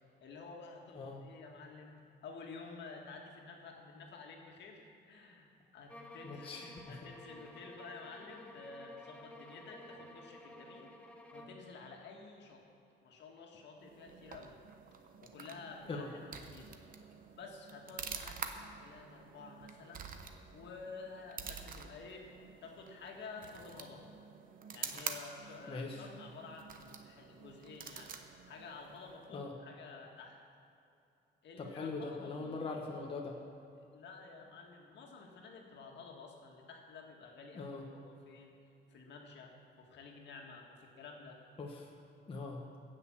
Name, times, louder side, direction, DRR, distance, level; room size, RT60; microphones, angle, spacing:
voice 1, 0.2-10.9 11.3-12.6 13.0-14.6 15.2-16.8 17.3-20.1 20.5-22.3 22.6-24.1 24.7-28.2 28.5-30.4 31.4-32.7 33.8-38.6 38.9-41.4, left 4 dB, 65° left, 1 dB, 2.0 m, -51 dB
sound 1, 5.9-11.7, left 1 dB, 5° left, 0.9 m, -53 dB
voice 2, 6.2-7.0 15.9-16.1 25.7-26.0 29.3-29.5 31.6-33.4 37.5-37.8 41.6-41.9 42.3-42.6, left 3 dB, 30° left, -1 dB, 1.2 m, -41 dB
sound 2, 13.8-29.4, right 6 dB, 45° right, 0.9 m, -48 dB
16.0 x 6.6 x 7.3 m, 2.7 s
cardioid pair, 150°, 19 cm